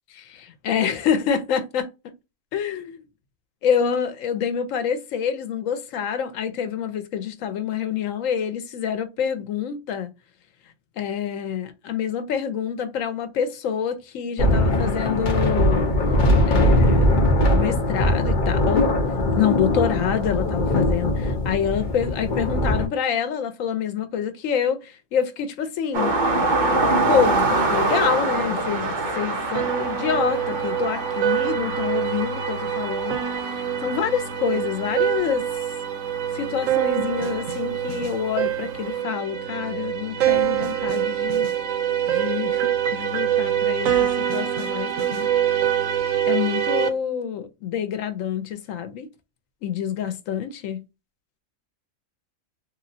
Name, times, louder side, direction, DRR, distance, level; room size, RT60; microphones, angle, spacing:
voice 1, 0.1-1.9 2.5-3.0 3.6-10.1 11.0-15.8 16.5-18.9 19.4-26.1 27.1-35.5 36.3-41.5 42.1-45.3 46.3-49.1 49.6-50.8, left 8 dB, 85° left, 1.0 m, -27 dB
sound 1, 14.4-22.9, left 1 dB, 45° left, 0.8 m, -20 dB
sound 2, 25.9-37.4 38.9-39.0, right 2 dB, 45° right, 0.8 m, -26 dB
sound 3, 29.6-46.9, right 10 dB, 85° right, 1.0 m, -25 dB
3.1 x 2.7 x 2.6 m
omnidirectional pair, 1.3 m